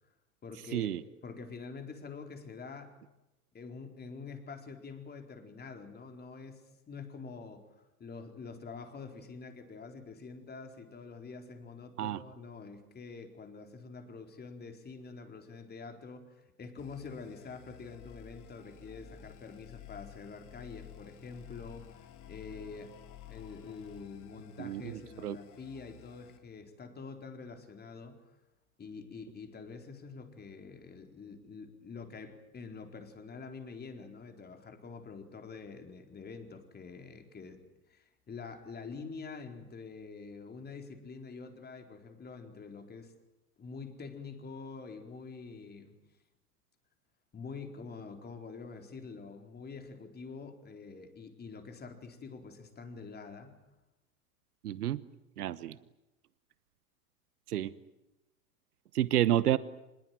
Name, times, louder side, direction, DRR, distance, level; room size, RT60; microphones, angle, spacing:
voice 1, 0.4-3.0 3.5-22.9 23.3-28.2 28.8-37.6 37.9-43.1 43.6-46.0 47.3-53.5, left 4 dB, 20° left, 6 dB, 4.3 m, -46 dB
sound 1, 16.8-26.4, left 10 dB, 40° left, 3.3 m, -53 dB
voice 2, 24.6-25.4 54.6-55.0 55.4-55.8 57.5-57.7 58.9-59.6, right 12 dB, 75° right, 17 dB, 1.2 m, -30 dB
25.5 x 21.5 x 9.3 m, 0.96 s
hypercardioid pair, 105°, 45 cm